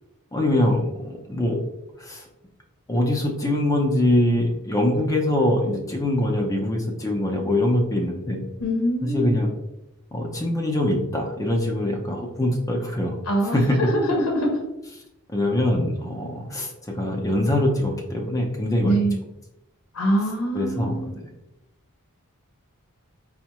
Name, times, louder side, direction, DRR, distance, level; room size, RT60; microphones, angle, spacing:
voice 1, 0.3-1.6 2.0-2.3 2.9-8.4 9.0-9.5 10.1-13.2 13.5-13.8 15.3-19.0 20.5-21.1, left 1 dB, 15° left, 1 dB, 0.4 m, -23 dB
voice 2, 8.6-9.3 13.3-14.6 18.8-19.2 19.9-21.1, right 1 dB, 85° left, 1 dB, 0.6 m, -24 dB
4.4 x 2.1 x 2.9 m, 0.90 s
head